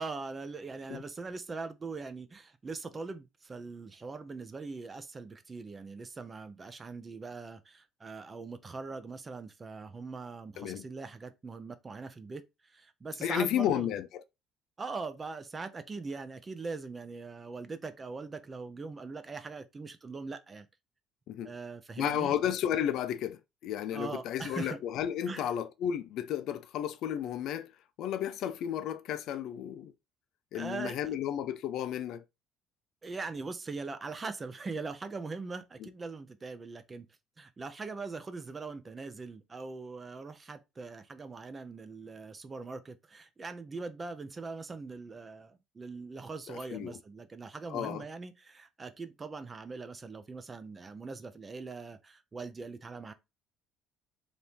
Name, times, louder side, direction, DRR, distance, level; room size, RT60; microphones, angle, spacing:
voice 1, 0.0-13.9 14.8-20.7 21.4-22.3 23.9-24.8 25.3-25.5 30.5-31.1 33.0-37.1 37.4-53.1, right 4 dB, 20° right, 0.6 m, -41 dB
voice 2, 13.2-14.2 21.3-21.5 22.0-27.7 28.0-29.9 30.5-32.2 35.8-35.9 46.5-47.0 47.7-48.1, left 10 dB, 60° left, 0.5 m, -33 dB
3.5 x 2.6 x 4.5 m
cardioid pair, 135°, 0 cm